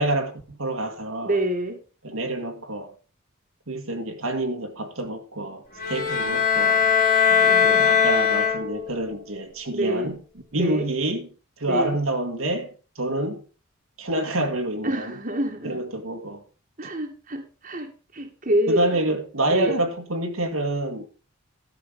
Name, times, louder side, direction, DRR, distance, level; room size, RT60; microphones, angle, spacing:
voice 1, 0.0-1.4 2.0-2.9 3.7-6.9 7.6-10.2 10.5-11.3 11.6-13.4 14.0-15.1 15.6-16.4 18.7-21.1, right 1 dB, 85° right, 2.0 m, -27 dB
voice 2, 1.2-1.8 7.3-8.1 9.7-10.2 10.5-10.9 11.6-12.0 14.8-15.8 16.8-19.0 19.5-19.8, right 1 dB, 40° right, 1.8 m, -27 dB
sound 1, 5.8-9.0, left 7 dB, 40° left, 2.9 m, -20 dB
12.5 x 6.7 x 5.3 m
head